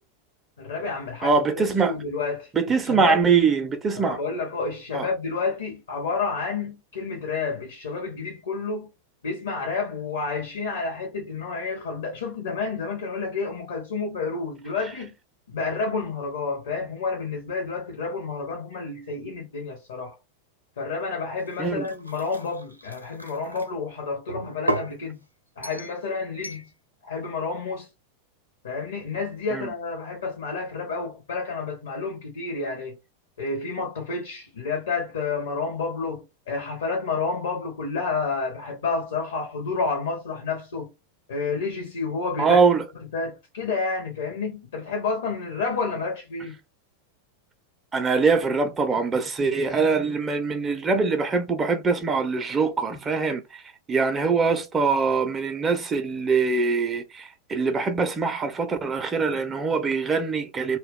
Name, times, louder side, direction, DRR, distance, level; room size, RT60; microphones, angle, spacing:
voice 1, 0.6-2.5 2.8-3.3 3.9-8.9 9.2-15.1 15.5-20.2 20.8-25.2 25.6-26.7 27.0-27.9 28.6-32.9 33.4-40.9 41.3-42.7 43.1-46.6, left 4 dB, 65° left, 0.7 m, -30 dB
voice 2, 1.2-1.9 2.6-4.2 4.9-5.1 21.6-21.9 29.5-29.7 42.4-42.8 47.9-53.6 53.9-60.8, right 4 dB, 20° right, 0.3 m, -23 dB
sound 1, 21.4-23.7 24.3-25.0 25.6-26.0 26.4-26.7, right 1 dB, 90° right, 0.4 m, -33 dB
2.2 x 2.0 x 3.5 m
figure-of-eight pair, 90°, 0 cm